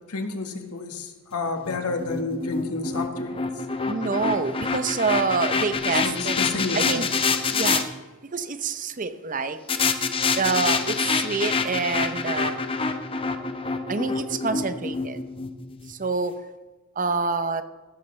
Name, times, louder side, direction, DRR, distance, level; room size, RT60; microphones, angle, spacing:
voice 1, 0.1-3.6 6.0-7.1, left 3 dB, 85° left, 5 dB, 1.6 m, -30 dB
sound 1, 1.6-7.8 9.7-15.9, left 4 dB, 25° left, 0.7 m, -26 dB
voice 2, 3.9-6.4 6.7-7.1 7.5-7.8 8.3-9.6 10.4-12.5 13.9-15.2 15.9-16.3 17.0-17.6, right 4 dB, 35° right, 11 dB, 0.7 m, -26 dB
15.0 x 13.0 x 3.2 m, 1.2 s
head